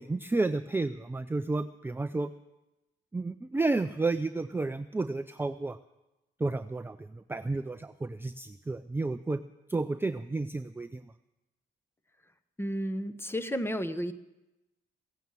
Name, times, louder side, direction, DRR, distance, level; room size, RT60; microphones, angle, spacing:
voice 1, 0.0-2.3 3.1-5.8 6.4-9.4 9.7-11.1, right 3 dB, 10° right, 10 dB, 0.4 m, -31 dB
voice 2, 12.6-14.1, equal, 10° left, 10 dB, 1.0 m, -32 dB
16.5 x 9.2 x 7.4 m, 0.97 s
cardioid pair, 90°, 20 cm